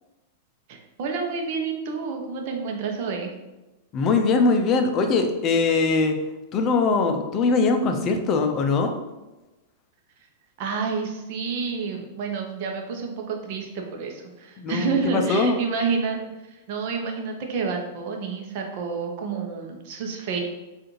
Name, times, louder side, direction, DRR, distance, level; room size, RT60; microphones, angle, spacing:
voice 1, 0.7-3.3 10.6-20.4, right 5 dB, 55° right, 2 dB, 0.7 m, -29 dB
voice 2, 3.9-6.1 6.5-8.9 14.6-15.6, left 4 dB, 35° left, 5 dB, 0.5 m, -21 dB
4.7 x 2.5 x 3.1 m, 1.1 s
hypercardioid pair, 135°, 0 cm